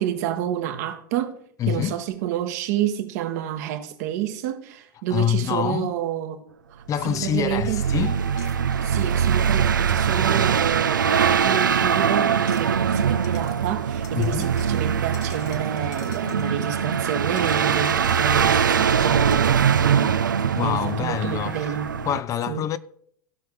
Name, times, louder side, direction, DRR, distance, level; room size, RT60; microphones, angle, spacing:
voice 1, 0.0-1.4 1.7-6.5 7.0-7.8 8.8-20.4 20.6-21.9 22.5-22.6, right 10 dB, 60° right, 1.2 m, -29 dB
voice 2, 1.6-2.0 5.1-5.9 6.9-8.2 14.2-14.6 20.6-22.8, left 10 dB, 30° left, 0.5 m, -26 dB
sound 1, 7.0-22.2, right 7 dB, 85° right, 0.4 m, -22 dB
sound 2, 7.1-7.2 8.3-9.7 10.3-10.4 12.4-13.0 13.2-13.6 14.0-16.5 17.4-19.7, left 8 dB, 65° left, 1.6 m, -49 dB
16.0 x 5.8 x 3.8 m
figure-of-eight pair, 90°, 10 cm